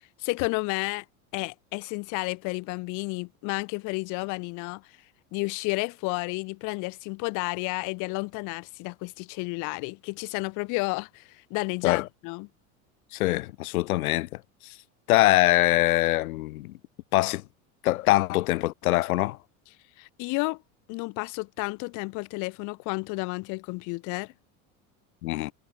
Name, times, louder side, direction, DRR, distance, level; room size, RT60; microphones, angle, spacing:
voice 1, 0.2-1.0 1.3-4.8 5.3-12.5 20.0-20.6 20.9-24.3, left 28 dB, 45° left, 0.5 m, -31 dB
voice 2, 13.1-14.7 15.1-16.8 17.1-17.4 17.8-19.4 25.2-25.5, left 18 dB, 85° left, 0.8 m, -23 dB
hypercardioid pair, 95°, 42 cm